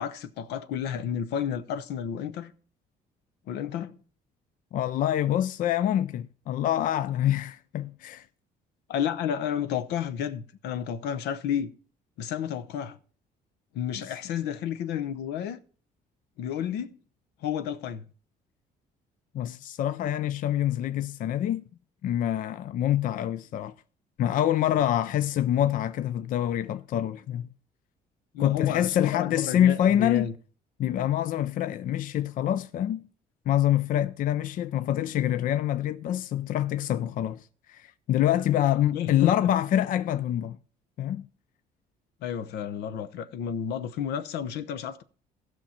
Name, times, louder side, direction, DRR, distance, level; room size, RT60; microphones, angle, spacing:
voice 1, 0.0-2.5 3.5-3.9 8.9-11.7 12.2-13.0 13.7-15.6 16.4-17.0 17.4-18.0 28.3-30.3 38.9-39.5 42.2-45.0, left 9 dB, 85° left, 0.8 m, -31 dB
voice 2, 4.7-8.2 19.3-21.7 22.0-23.7 24.2-27.5 28.4-30.3 30.8-33.1 33.5-40.6 41.0-41.2, left 11 dB, 55° left, 0.4 m, -26 dB
15.5 x 6.0 x 4.3 m
cardioid pair, 110°, 17 cm